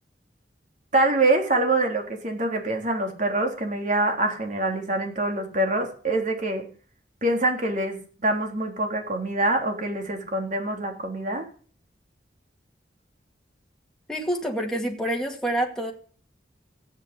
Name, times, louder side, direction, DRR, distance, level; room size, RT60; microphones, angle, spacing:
voice 1, 0.9-6.6 7.2-11.5, right 2 dB, 45° right, 3 dB, 3.6 m, -25 dB
voice 2, 14.1-15.9, right 1 dB, 5° left, -1 dB, 2.2 m, -27 dB
15.5 x 8.8 x 8.3 m, 0.42 s
head